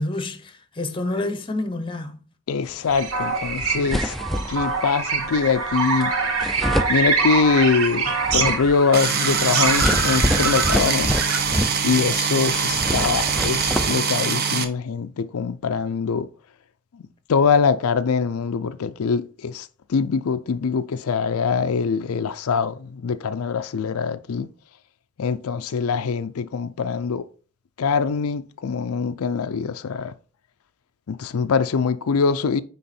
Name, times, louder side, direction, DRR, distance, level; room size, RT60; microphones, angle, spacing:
voice 1, 0.0-2.2, left 2 dB, 25° left, 0.8 m, -28 dB
voice 2, 2.5-4.1 4.5-6.1 6.9-11.1 11.8-16.3 17.3-24.5 25.2-27.3 27.8-30.1 31.1-32.6, left 5 dB, 85° left, 0.4 m, -23 dB
sound 1, 2.9-11.5, right 4 dB, 90° right, 1.5 m, -25 dB
sound 2, 3.2-3.3 3.6-4.8 6.0-6.1 6.4-7.6 8.0-12.2 12.5-13.9, equal, ahead, 0.4 m, -27 dB
sound 3, 8.9-14.6, right 6 dB, 45° right, 0.8 m, -23 dB
9.3 x 3.5 x 4.3 m
head